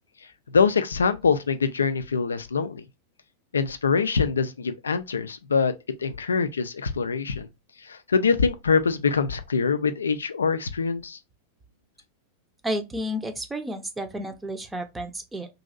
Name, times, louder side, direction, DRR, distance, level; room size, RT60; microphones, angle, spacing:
voice 1, 0.5-2.8 3.5-5.7 6.0-7.5 7.9-11.2, left 5 dB, 70° left, 0.3 m, -24 dB
voice 2, 12.6-15.5, equal, 10° right, 0.6 m, -31 dB
3.1 x 2.6 x 2.5 m
figure-of-eight pair, 90°, 0 cm